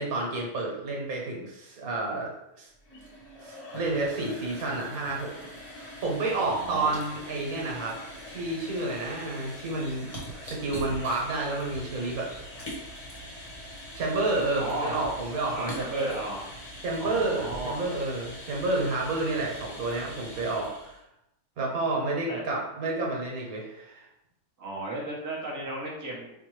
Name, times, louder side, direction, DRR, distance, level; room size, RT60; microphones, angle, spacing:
voice 1, 0.0-2.7 3.4-5.3 5.7-8.0 8.3-10.1 10.4-12.3 13.9-16.1 16.8-21.0 21.6-24.0, right 2 dB, 90° right, -1 dB, 1.4 m, -30 dB
sound 1, 2.7-21.0, equal, 30° left, 0.9 m, -42 dB
voice 2, 6.3-7.0 14.6-15.0 15.5-16.5 17.0-17.8 22.3-22.4 24.6-26.3, right 1 dB, 15° right, -4 dB, 0.7 m, -34 dB
4.5 x 2.3 x 3.1 m, 0.85 s
omnidirectional pair, 1.5 m